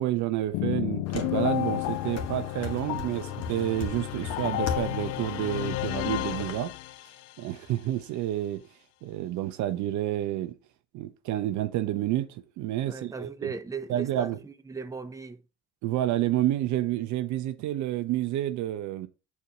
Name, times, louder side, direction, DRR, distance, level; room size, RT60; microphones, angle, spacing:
voice 1, 0.0-6.7 7.4-8.6 9.0-10.6 10.9-13.3 13.9-14.4 15.8-19.1, right 13 dB, 60° right, 0.7 m, -29 dB
sound 1, 0.5-7.3, left 17 dB, 65° left, 0.5 m, -32 dB
sound 2, 1.1-6.5, left 5 dB, 50° left, 1.3 m, -38 dB
voice 2, 12.9-15.4, right 5 dB, 10° right, 0.7 m, -37 dB
7.3 x 4.2 x 4.9 m
hypercardioid pair, 50°, 34 cm